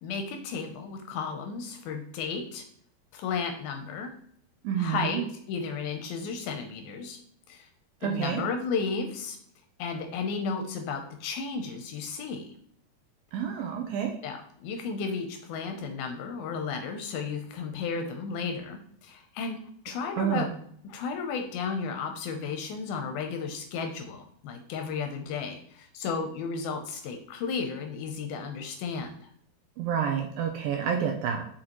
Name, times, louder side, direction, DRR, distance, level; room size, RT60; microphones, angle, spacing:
voice 1, 0.0-2.6 3.1-4.1 4.8-5.2 5.5-7.2 7.5-7.7 8.0-9.4 9.8-12.5 14.2-20.5 20.8-29.3, left 5 dB, 80° left, 5 dB, 2.4 m, -33 dB
voice 2, 4.6-5.2 8.0-8.4 13.3-14.1 20.2-20.5 29.8-31.4, right 8 dB, 80° right, 3 dB, 2.2 m, -28 dB
6.5 x 5.7 x 3.0 m, 0.64 s
omnidirectional pair, 4.7 m